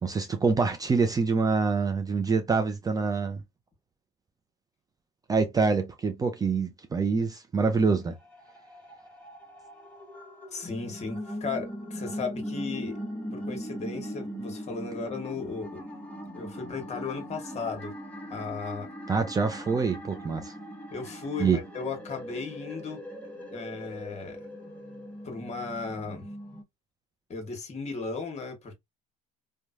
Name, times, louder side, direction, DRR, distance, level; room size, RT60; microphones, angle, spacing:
voice 1, 0.0-3.4 5.3-8.2 19.1-20.5 21.4-21.6, right 4 dB, 20° right, 0.5 m, -26 dB
sound 1, 8.2-26.6, equal, 10° left, 1.1 m, -40 dB
voice 2, 10.5-13.0 13.3-15.8 16.3-17.9 18.3-18.9 20.9-23.0 23.5-24.4 25.2-26.3 27.3-28.7, left 4 dB, 35° left, 1.3 m, -36 dB
3.0 x 2.2 x 2.5 m
hypercardioid pair, 80°, 18 cm